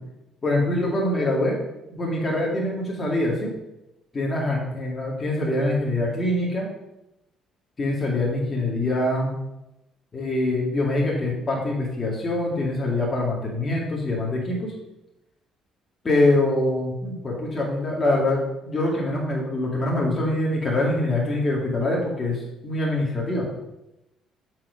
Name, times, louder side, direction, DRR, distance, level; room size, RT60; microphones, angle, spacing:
voice 1, 0.4-1.6 1.9-3.5 4.1-6.7 7.8-9.3 10.1-14.7 16.0-23.5, left 1 dB, 35° left, -3 dB, 2.1 m, -24 dB
7.2 x 4.8 x 4.9 m, 0.92 s
hypercardioid pair, 50°, 0 cm